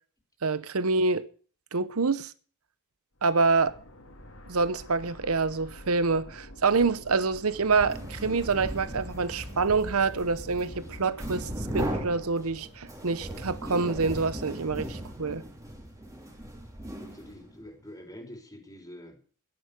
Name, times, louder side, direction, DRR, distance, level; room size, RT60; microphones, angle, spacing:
voice 1, 0.4-1.3 1.7-2.3 3.2-3.7 4.5-15.4, right 4 dB, 85° right, 0.9 m, -26 dB
sound 1, 3.2-13.0, left 1 dB, 80° left, 2.8 m, -48 dB
sound 2, 7.6-17.6, equal, 15° right, 3.1 m, -38 dB
voice 2, 17.0-19.2, left 1 dB, 15° left, 3.4 m, -46 dB
12.5 x 11.0 x 6.7 m
head